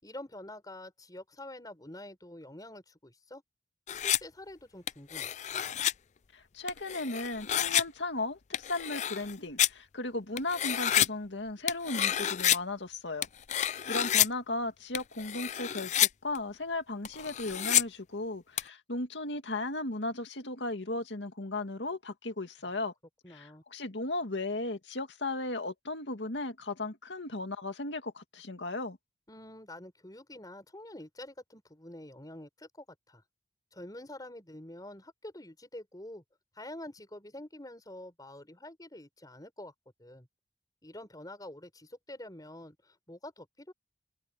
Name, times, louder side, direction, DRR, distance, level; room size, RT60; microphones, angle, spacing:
voice 1, 0.0-3.4 4.0-5.3 23.2-23.6 29.3-33.2 33.7-36.2 36.6-39.7 40.0-40.3 40.8-43.7, left 1 dB, 20° left, 5.4 m, -47 dB
sound 1, 3.9-4.2 4.9-5.9 6.7-7.8 8.5-9.7 10.4-11.1 11.7-12.6 13.2-14.3 14.9-16.1 16.4-16.5 17.1-17.8 18.6-18.7, left 11 dB, 40° left, 0.4 m, -28 dB
voice 2, 6.3-13.3 13.6-22.9 23.3-29.0, left 2 dB, 85° left, 2.1 m, -36 dB
head